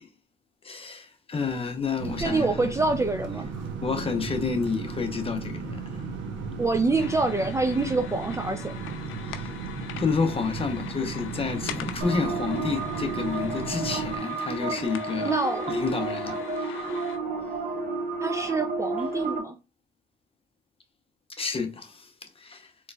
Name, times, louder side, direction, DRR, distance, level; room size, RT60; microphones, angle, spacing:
voice 1, 0.6-2.6 3.8-6.1 9.2-9.5 10.0-15.3 15.7-17.1 21.3-22.7, left 5 dB, 30° left, 0.8 m, -30 dB
sound 1, 2.0-14.2, right 4 dB, 75° right, 0.7 m, -35 dB
voice 2, 2.2-3.6 6.6-8.7 15.2-15.8 18.2-19.6, right 3 dB, 15° right, 0.4 m, -26 dB
sound 2, 7.0-17.2, left 10 dB, 85° left, 0.5 m, -43 dB
sound 3, 12.0-19.4, right 3 dB, 40° right, 1.2 m, -31 dB
3.8 x 3.1 x 2.3 m
cardioid pair, 90°, 20 cm